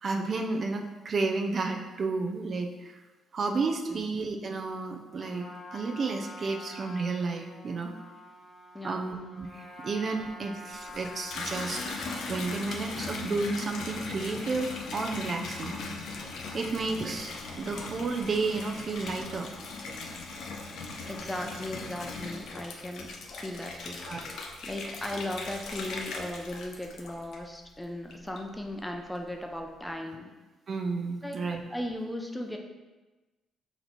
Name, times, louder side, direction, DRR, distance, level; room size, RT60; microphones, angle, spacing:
voice 1, 0.0-3.0 3.3-7.9 8.8-11.8 12.3-15.7 16.5-19.5 24.1-24.2 30.7-31.6, right 3 dB, 45° right, 3 dB, 0.4 m, -32 dB
Trumpet, 5.1-12.0, left 1 dB, 30° left, 1.1 m, -47 dB
voice 2, 8.7-9.1 21.1-30.3 31.2-31.4 31.7-32.6, left 1 dB, 5° left, 2 dB, 0.5 m, -37 dB
Water tap faucet / Bathtub (filling or washing), 10.8-27.6 28.1-28.7, left 3 dB, 75° left, 0.5 m, -39 dB
3.9 x 2.9 x 4.2 m, 1.2 s
cardioid pair, 90°, 0 cm